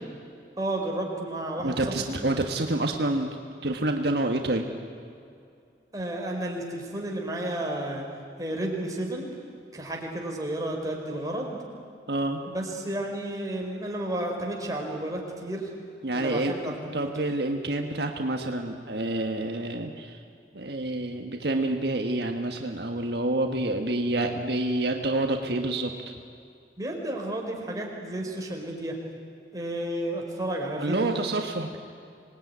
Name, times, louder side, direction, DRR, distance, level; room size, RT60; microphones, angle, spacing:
voice 1, 0.6-2.2 5.9-8.1 8.4-9.3 9.7-11.6 12.4-15.7 16.1-17.1 26.8-29.0 29.5-31.2, right 1 dB, 20° right, 0 dB, 4.2 m, -32 dB
voice 2, 1.6-3.3 3.6-4.7 12.1-12.4 16.0-16.5 16.9-20.2 20.5-25.9 30.8-31.7, right 2 dB, 70° right, 3 dB, 1.5 m, -28 dB
26.0 x 19.5 x 9.6 m, 2.4 s
head